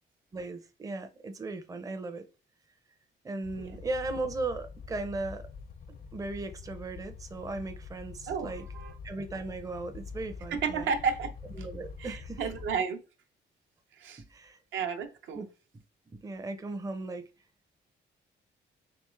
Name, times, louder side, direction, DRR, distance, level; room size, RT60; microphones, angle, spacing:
voice 1, 0.3-2.2 3.2-5.5 6.1-8.7 9.0-10.9 11.5-12.5 14.2-14.6 15.3-15.5 16.1-17.3, right 2 dB, 15° right, 0.5 m, -37 dB
sound 1, 3.4-12.8, left 5 dB, 45° left, 0.5 m, -45 dB
voice 2, 8.3-8.9 10.5-11.3 12.0-13.0 14.0-14.2 14.7-15.5, right 6 dB, 75° right, 0.6 m, -32 dB
3.4 x 3.0 x 3.2 m
cardioid pair, 90°, 20 cm